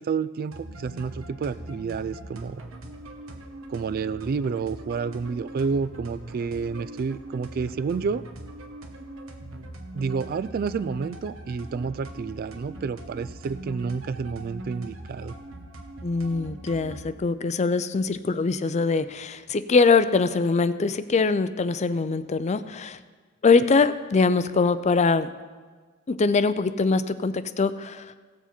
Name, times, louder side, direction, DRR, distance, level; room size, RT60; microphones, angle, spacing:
voice 1, 0.0-2.6 3.7-8.2 9.9-15.4, right 5 dB, 45° right, 15 dB, 0.3 m, -29 dB
sound 1, 0.5-17.1, right 1 dB, 75° right, 1.2 m, -41 dB
voice 2, 16.0-23.0 23.4-25.3 26.1-28.2, left 4 dB, 35° left, 13 dB, 0.4 m, -23 dB
17.0 x 7.1 x 4.4 m, 1.5 s
head